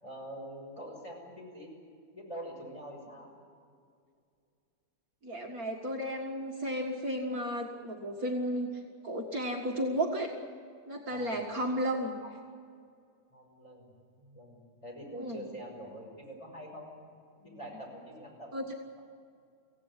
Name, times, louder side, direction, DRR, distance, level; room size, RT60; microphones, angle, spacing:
voice 1, 0.0-1.7 2.1-3.3 11.1-11.5 13.3-16.9 17.4-18.5, equal, 15° left, -1 dB, 6.4 m, -45 dB
voice 2, 5.2-8.7 9.0-10.3 10.9-12.3 15.2-15.4 18.5-18.6, equal, 50° right, 1 dB, 2.2 m, -33 dB
25.0 x 17.0 x 9.9 m, 2.3 s
omnidirectional pair, 2.0 m